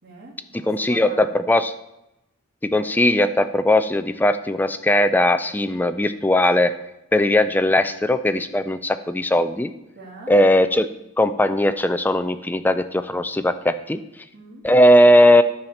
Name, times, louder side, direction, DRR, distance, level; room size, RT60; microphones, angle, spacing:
voice 1, 0.0-1.3 9.9-10.3 14.3-14.6, right 2 dB, 45° right, -5 dB, 2.3 m, -42 dB
voice 2, 0.5-1.7 2.6-6.7 7.1-9.7 10.3-10.9 11.2-14.0 14.6-15.4, left 1 dB, 10° left, 10 dB, 0.4 m, -18 dB
11.0 x 4.3 x 7.0 m, 0.91 s
head